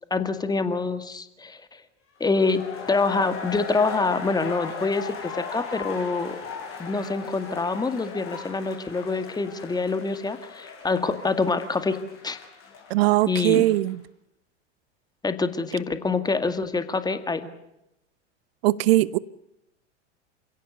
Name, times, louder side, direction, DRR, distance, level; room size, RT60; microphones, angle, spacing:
voice 1, 0.1-1.6 2.2-2.6 2.9-6.4 6.8-12.0 12.2-12.4 13.3-13.6 15.2-17.5, left 3 dB, 10° left, 9 dB, 2.0 m, -26 dB
sound 1, 2.2-13.9, left 6 dB, 35° left, 7.6 m, -38 dB
voice 2, 12.9-14.0 18.6-19.2, right 17 dB, 55° right, 20 dB, 0.9 m, -20 dB
28.0 x 17.0 x 8.2 m, 0.86 s
figure-of-eight pair, 90°, 36 cm